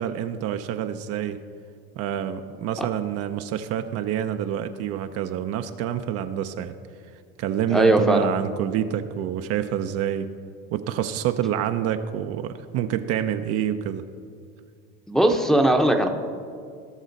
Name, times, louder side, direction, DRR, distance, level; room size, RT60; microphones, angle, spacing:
voice 1, 0.0-1.4 2.0-6.7 7.4-10.3 10.7-14.0, right 10 dB, 55° right, 8 dB, 0.6 m, -27 dB
voice 2, 7.7-8.2 15.1-16.1, right 1 dB, ahead, 3 dB, 0.8 m, -19 dB
18.0 x 6.2 x 4.0 m, 2.2 s
supercardioid pair, 115°, 30 cm